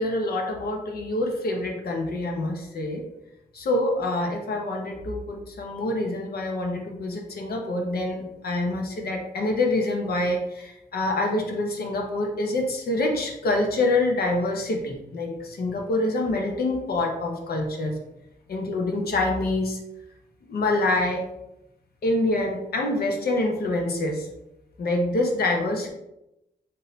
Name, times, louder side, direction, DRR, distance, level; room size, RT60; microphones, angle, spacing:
voice 1, 0.0-3.1 3.5-18.0 18.5-19.8 20.5-21.2 22.0-24.3 24.8-25.9, left 2 dB, 65° left, 1 dB, 0.9 m, -26 dB
3.7 x 2.8 x 3.9 m, 0.87 s
wide cardioid pair, 130°, 17 cm